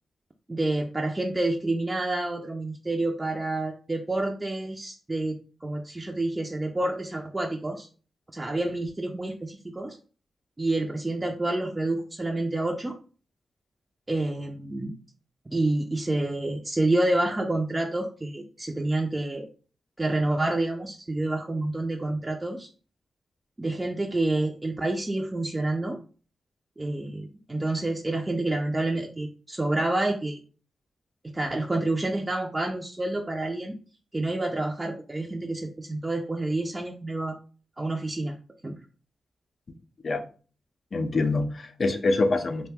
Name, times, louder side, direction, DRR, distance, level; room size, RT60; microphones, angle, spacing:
voice 1, 0.5-7.9 8.3-10.0 10.6-12.9 14.1-15.0 15.5-19.5 20.0-22.7 23.6-26.0 26.8-30.4 31.2-33.8 34.1-37.4 37.8-38.4 38.6-38.8, right 2 dB, 25° right, 1 dB, 0.4 m, -28 dB
voice 2, 40.9-42.7, left 3 dB, 55° left, 7 dB, 0.4 m, -25 dB
2.6 x 2.1 x 3.4 m, 0.38 s
supercardioid pair, 45°, 0 cm